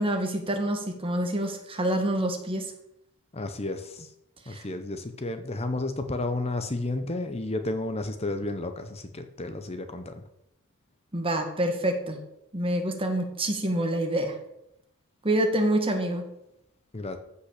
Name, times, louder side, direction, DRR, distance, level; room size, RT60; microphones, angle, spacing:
voice 1, 0.0-2.7 4.5-4.6 11.1-12.2 12.5-14.4 15.2-16.2, right 1 dB, 25° right, 4 dB, 1.8 m, -27 dB
voice 2, 3.3-4.1 4.5-10.2 16.9-17.2, left 2 dB, 30° left, 8 dB, 0.8 m, -32 dB
14.5 x 5.7 x 6.6 m, 0.83 s
head